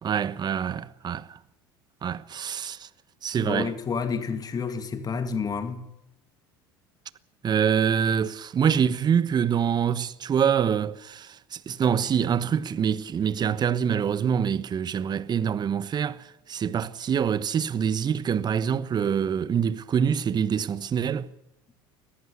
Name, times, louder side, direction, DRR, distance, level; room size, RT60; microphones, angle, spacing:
voice 1, 0.0-1.4 2.0-2.9 3.2-3.7 7.4-21.3, right 8 dB, 35° right, 1.2 m, -25 dB
voice 2, 3.4-5.8, left 5 dB, 35° left, 2.4 m, -29 dB
22.0 x 14.5 x 8.2 m
hypercardioid pair, 80°, 12 cm